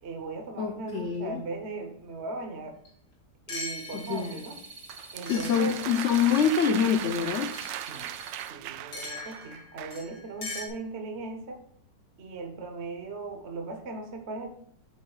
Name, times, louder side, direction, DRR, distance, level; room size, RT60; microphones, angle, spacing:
voice 1, 0.0-2.8 3.5-4.6 5.1-5.8 7.9-8.2 8.5-11.6 12.2-14.5, right 3 dB, 40° right, 4 dB, 1.2 m, -38 dB
voice 2, 0.6-1.4 3.9-4.3 5.3-7.5, left 7 dB, 60° left, 6 dB, 0.8 m, -26 dB
sound 1, 2.8-2.9 3.5-4.3 5.3-6.8 7.5-7.8 8.9-10.7, left 2 dB, 85° left, 3.0 m, -40 dB
sound 2, 3.6-8.5, right 3 dB, 65° right, 2.8 m, -47 dB
sound 3, 4.9-10.1, right 13 dB, 85° right, 1.3 m, -38 dB
8.8 x 8.1 x 2.4 m, 0.68 s
omnidirectional pair, 1.9 m